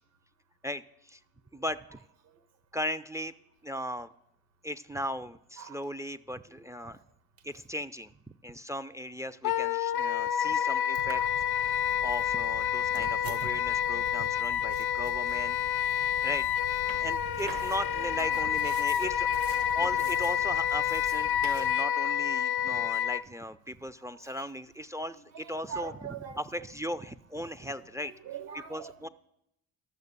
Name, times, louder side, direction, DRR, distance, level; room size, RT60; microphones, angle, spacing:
voice 1, 0.6-1.2 1.5-2.0 2.7-3.3 3.6-4.1 4.6-7.0 7.4-8.1 8.4-11.2 11.7-16.5 17.0-19.3 19.7-28.1 28.7-29.1, equal, 5° right, 0.4 m, -37 dB
Wind instrument woodwind instrument, 9.4-23.2, left 10 dB, 60° left, 0.6 m, -29 dB
voice 2, 10.9-11.3 11.9-12.0 13.1-13.2 13.8-14.1 16.8-17.0 18.0-18.9 19.3-20.2 22.0-22.1 24.1-24.4 25.1-26.4 27.6-29.1, right 7 dB, 70° right, 1.3 m, -45 dB
sound 1, 11.1-21.7, right 7 dB, 50° right, 0.8 m, -45 dB
12.0 x 6.7 x 6.6 m
hypercardioid pair, 55°, 44 cm